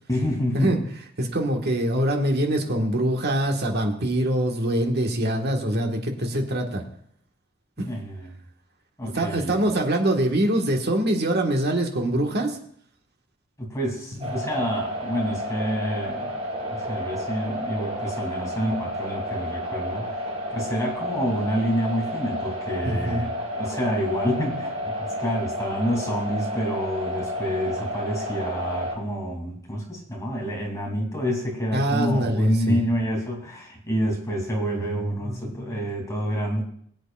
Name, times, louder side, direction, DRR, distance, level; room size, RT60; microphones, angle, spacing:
voice 1, 0.1-0.9 7.8-8.3 9.0-9.5 13.6-16.4 16.6-36.6, equal, 15° left, -1 dB, 2.9 m, -28 dB
voice 2, 1.2-6.8 7.8-7.9 9.0-12.6 14.2-14.3 22.8-23.3 31.7-32.8 34.8-35.8, right 1 dB, 55° right, 2 dB, 1.6 m, -24 dB
sound 1, 14.2-28.9, equal, 35° right, 5.8 m, -31 dB
22.5 x 8.2 x 2.5 m, 0.65 s
head